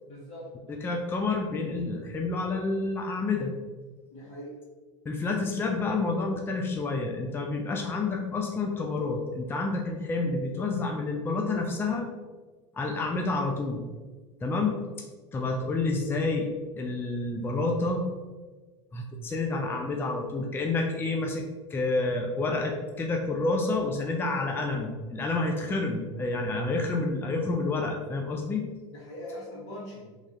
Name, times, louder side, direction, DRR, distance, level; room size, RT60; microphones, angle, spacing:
voice 1, 0.0-0.5 4.1-4.6 28.9-30.2, equal, 45° left, -10 dB, 1.5 m, -41 dB
voice 2, 0.8-3.5 5.1-12.1 12.7-13.9 14.4-14.7 15.3-18.1 18.9-21.4 21.7-28.7, left 3 dB, 15° left, 1 dB, 0.4 m, -29 dB
3.1 x 2.6 x 3.7 m, 1.3 s
supercardioid pair, 115°, 15 cm